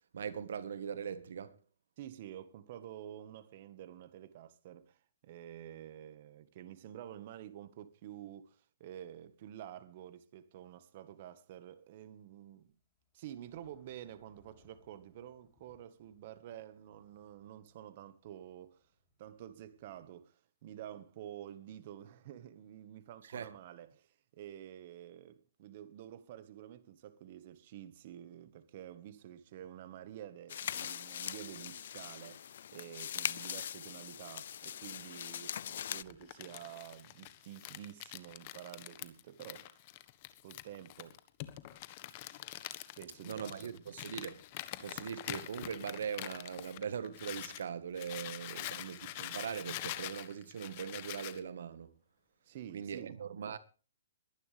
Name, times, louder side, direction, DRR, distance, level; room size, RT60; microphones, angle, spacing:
voice 1, 0.1-1.6 23.2-23.5 43.2-44.4 44.8-51.9 52.7-53.6, right 7 dB, 70° right, 1.6 m, -41 dB
voice 2, 2.0-12.7 13.1-18.8 19.2-39.8 40.4-41.2 43.0-43.7 48.5-48.7 52.4-53.2, right 11 dB, 45° right, 1.5 m, -49 dB
Thunder / Rain, 11.8-20.1, left 1 dB, 15° left, 7.2 m, -72 dB
sound 1, 30.5-36.0, left 9 dB, 60° left, 0.6 m, -41 dB
Crumpling crinkling, 36.0-47.6 47.9-51.4, left 15 dB, 35° left, 1.4 m, -45 dB
21.5 x 11.0 x 3.5 m
hypercardioid pair, 150°, 0 cm